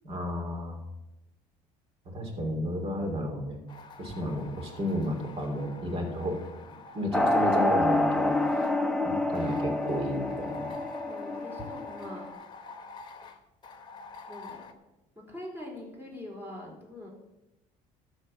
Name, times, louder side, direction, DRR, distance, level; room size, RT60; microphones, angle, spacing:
voice 1, 0.0-0.8 2.0-3.6 4.0-6.4 6.9-8.4 9.0-10.7, equal, 45° right, 2 dB, 3.4 m, -32 dB
sound 1, 3.7-8.7 9.3-14.7, left 4 dB, 30° left, 1.2 m, -47 dB
voice 2, 4.2-4.5 8.5-9.1 11.1-12.3 14.3-14.6 15.3-17.1, left 1 dB, 15° right, -2 dB, 4.2 m, -43 dB
sound 2, 7.1-12.3, left 1 dB, 5° left, 0.9 m, -27 dB
13.0 x 4.4 x 8.2 m, 0.95 s
cardioid pair, 115°, 14 cm